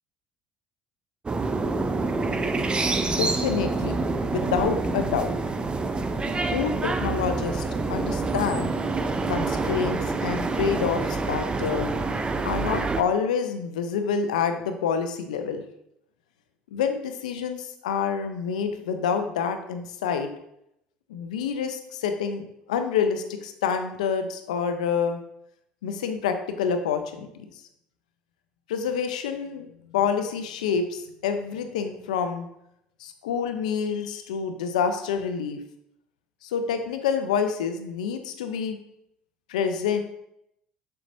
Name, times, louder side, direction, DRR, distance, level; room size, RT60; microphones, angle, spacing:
sound 1, 1.3-13.0, right 3 dB, 25° right, 0.6 m, -27 dB
voice 1, 3.1-5.3 6.5-7.6 7.9-8.7 9.2-11.9 12.4-15.6 16.7-20.3 21.1-25.2 25.8-27.5 28.7-32.5 33.0-35.6 36.4-38.8 39.5-40.0, left 6 dB, 85° left, 7 dB, 0.6 m, -27 dB
7.1 x 5.7 x 2.7 m, 0.77 s
hypercardioid pair, 65°, 4 cm